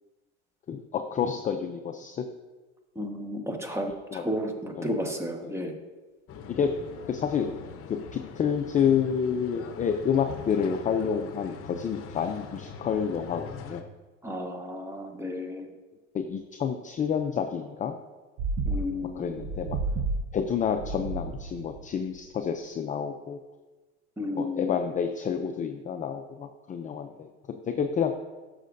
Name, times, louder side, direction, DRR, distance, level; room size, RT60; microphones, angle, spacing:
voice 1, 0.7-2.2 4.1-4.2 4.8-4.9 5.4-5.5 6.5-6.7 7.1-7.5 7.9-13.8 16.1-18.0 19.2-19.8 20.3-23.4 24.4-27.3 27.7-28.1, left 7 dB, 25° left, 6 dB, 0.5 m, -29 dB
voice 2, 2.9-5.7 14.2-15.7 18.6-19.3 24.2-24.8, left 1 dB, 10° right, 3 dB, 1.3 m, -33 dB
sound 1, 6.3-13.8, left 6 dB, 40° left, 0.9 m, -43 dB
sound 2, 18.4-21.9 22.2-22.3, right 3 dB, 45° right, 0.8 m, -32 dB
12.0 x 6.6 x 2.6 m, 1.2 s
supercardioid pair, 100°, 34 cm